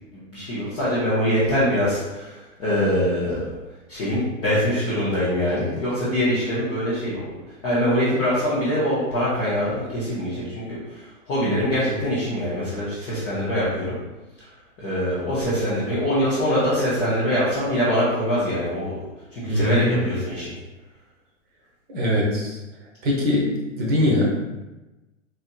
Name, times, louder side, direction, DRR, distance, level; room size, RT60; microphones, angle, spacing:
voice 1, 0.3-3.5 3.9-7.3 7.6-13.9 14.8-19.0 19.3-20.5, equal, 15° left, -10 dB, 0.3 m, -23 dB
voice 2, 19.5-20.0 21.9-22.6 23.0-24.3, left 1 dB, 25° right, -3 dB, 0.8 m, -22 dB
4.0 x 2.6 x 2.2 m, 1.1 s
hypercardioid pair, 125°, 39 cm